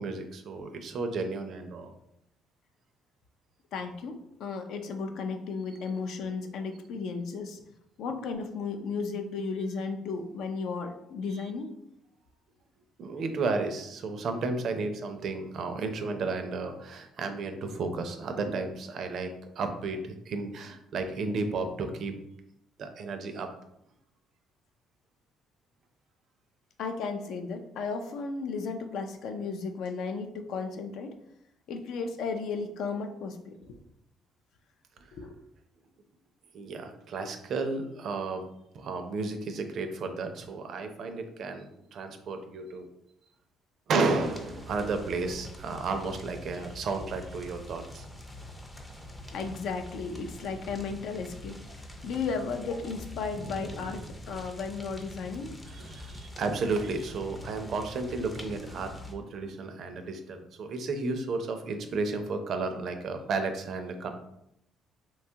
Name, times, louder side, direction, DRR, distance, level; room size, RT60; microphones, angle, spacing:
voice 1, 0.0-1.9 11.3-11.5 13.0-22.1 22.8-23.5 36.5-38.5 38.7-42.9 43.9-48.1 53.4-54.1 55.7-64.1, right 3 dB, 60° right, 7 dB, 0.4 m, -33 dB
voice 2, 3.7-7.6 8.0-11.7 26.8-31.1 31.7-33.8 35.1-35.4 49.3-51.6 52.0-55.6, left 4 dB, 70° left, 6 dB, 0.4 m, -34 dB
sound 1, 44.2-59.1, left 1 dB, 15° left, 0.5 m, -45 dB
2.9 x 2.2 x 2.7 m, 0.79 s
cardioid pair, 90°, 0 cm